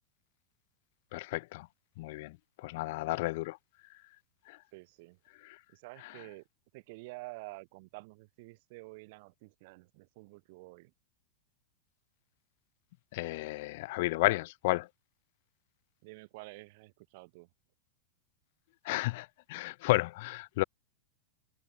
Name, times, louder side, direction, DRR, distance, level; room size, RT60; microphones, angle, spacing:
voice 1, 1.1-1.7 2.0-3.6 4.5-4.6 13.1-14.9 18.8-20.6, left 21 dB, 50° left, 0.5 m, -32 dB
voice 2, 4.7-5.2 5.7-6.4 6.7-10.9 16.0-17.5, right 25 dB, 50° right, 4.8 m, -49 dB
figure-of-eight pair, 90°, 0 cm